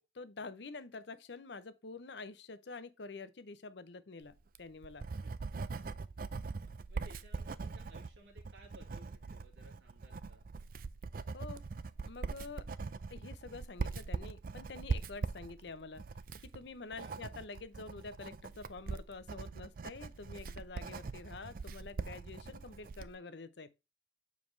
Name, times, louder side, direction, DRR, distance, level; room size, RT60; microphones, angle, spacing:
voice 1, 0.2-5.1 11.3-11.6 12.1-12.6 13.1-16.0 16.4-23.7, left 4 dB, 65° left, 0.7 m, -47 dB
Writing, 4.4-23.1, right 4 dB, 50° right, 0.4 m, -42 dB
voice 2, 6.9-10.4 17.0-17.2, right 1 dB, 80° right, 2.0 m, -59 dB
7.3 x 4.7 x 3.2 m
head